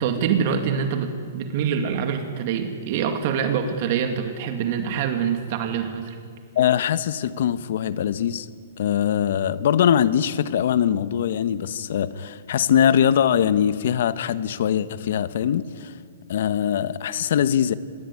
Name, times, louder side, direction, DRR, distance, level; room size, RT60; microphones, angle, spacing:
voice 1, 0.0-6.2, right 7 dB, 40° right, 6 dB, 2.3 m, -25 dB
voice 2, 6.5-8.5 8.8-15.9 16.3-17.7, left 9 dB, 60° left, 14 dB, 1.2 m, -22 dB
25.5 x 21.0 x 9.8 m, 2.1 s
hypercardioid pair, 160°, 0 cm